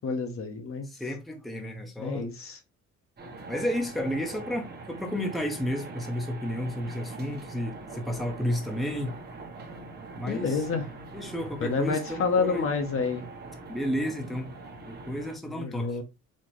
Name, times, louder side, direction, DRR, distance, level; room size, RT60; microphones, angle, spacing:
voice 1, 0.0-0.9 2.0-2.6 10.3-10.8 11.6-13.2 15.5-16.0, left 4 dB, 45° left, 1.0 m, -28 dB
voice 2, 0.8-2.2 3.5-9.1 10.1-10.6 11.1-12.6 13.7-14.5 14.9-15.9, equal, ahead, 0.8 m, -32 dB
sound 1, 3.2-15.4, right 3 dB, 35° right, 1.0 m, -43 dB
4.3 x 2.8 x 3.1 m
cardioid pair, 115°, 30 cm